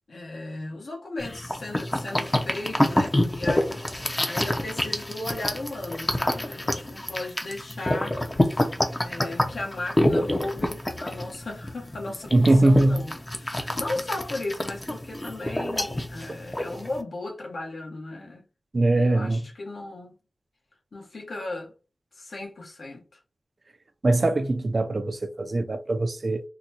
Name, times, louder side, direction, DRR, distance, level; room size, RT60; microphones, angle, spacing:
voice 1, 0.1-8.2 8.5-8.7 9.0-18.4 18.9-20.2 20.9-21.7 22.1-23.2, left 2 dB, 70° left, 1.1 m, -36 dB
sound 1, 1.2-17.0, left 1 dB, 25° left, 0.6 m, -27 dB
voice 2, 12.3-13.0 18.7-19.4 24.0-26.4, right 2 dB, 45° right, 0.4 m, -21 dB
3.9 x 2.2 x 2.8 m
wide cardioid pair, 95°, 0 cm